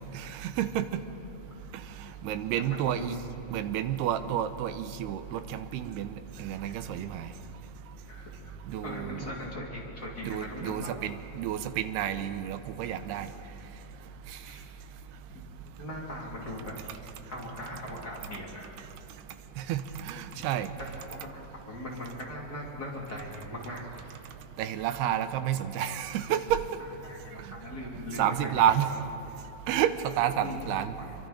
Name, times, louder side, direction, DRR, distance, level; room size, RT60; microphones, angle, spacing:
voice 1, 0.1-1.0 2.2-3.2 3.5-6.1 6.4-7.3 8.7-9.2 10.2-13.3 19.7-20.7 24.6-26.6 28.2-28.9 29.7-30.9, right 10 dB, 80° right, 11 dB, 2.7 m, -30 dB
voice 2, 2.6-3.3 6.6-6.8 8.1-8.5 8.8-10.9 14.4-14.6 15.3-15.4 15.8-17.0 17.3-18.8 20.3-20.4 20.9-24.2 27.0-28.6 30.4-30.7 31.0-31.2, left 1 dB, 25° left, -3 dB, 2.7 m, -40 dB
27.0 x 23.5 x 5.0 m, 2.9 s
omnidirectional pair, 4.7 m